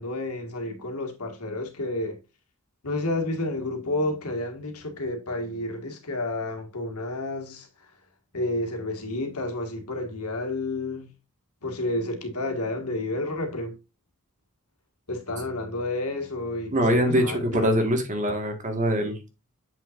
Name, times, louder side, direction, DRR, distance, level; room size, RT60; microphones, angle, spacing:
voice 1, 0.0-2.2 2.8-7.7 8.3-11.1 11.6-13.7 15.1-17.7, left 2 dB, 80° left, 1.9 m, -30 dB
voice 2, 16.7-19.2, equal, 35° right, 1.7 m, -23 dB
7.8 x 5.8 x 2.5 m
head